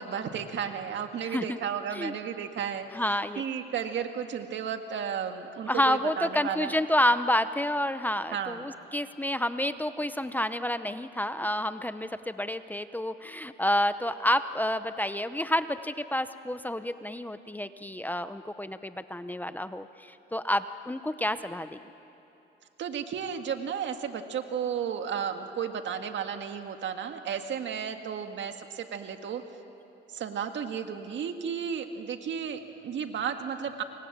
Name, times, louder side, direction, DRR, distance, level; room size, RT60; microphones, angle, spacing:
voice 1, 0.0-2.9 3.4-6.7 8.3-8.7 22.8-29.4 30.1-33.8, right 7 dB, 65° right, 6 dB, 1.9 m, -33 dB
voice 2, 2.9-3.4 5.7-21.8, left 1 dB, 10° left, 11 dB, 0.8 m, -29 dB
28.5 x 24.0 x 7.5 m, 2.9 s
cardioid pair, 90°, 20 cm